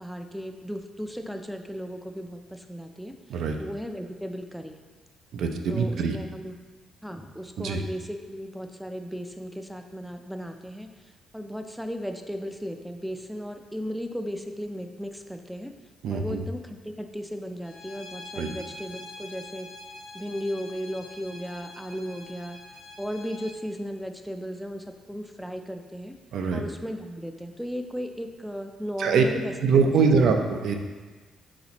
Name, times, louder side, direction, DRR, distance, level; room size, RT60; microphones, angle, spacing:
voice 1, 0.0-4.8 5.7-6.6 7.0-15.7 16.1-19.7 20.1-22.6 23.0-26.2 26.5-29.5 29.8-30.3, equal, ahead, 5 dB, 0.4 m, -36 dB
voice 2, 5.3-6.1 7.6-7.8 16.0-16.4 18.4-18.5 26.3-26.6 29.0-29.2 29.6-30.7, right 5 dB, 70° right, 4 dB, 0.4 m, -23 dB
Bowed string instrument, 17.6-23.5, left 2 dB, 85° left, 0.8 m, -45 dB
4.2 x 4.1 x 2.9 m, 1.4 s
cardioid pair, 90°, 0 cm